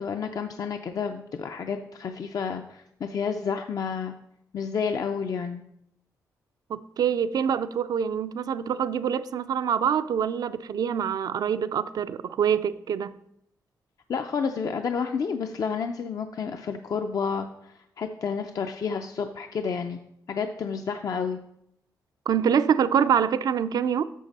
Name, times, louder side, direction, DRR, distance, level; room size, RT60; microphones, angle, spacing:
voice 1, 0.0-4.1 4.5-5.6 14.1-20.0 20.3-21.4, left 6 dB, 60° left, 0.5 m, -30 dB
voice 2, 6.7-13.1 22.3-24.0, right 8 dB, 70° right, 0.4 m, -25 dB
8.3 x 6.5 x 4.1 m
cardioid pair, 80°, 7 cm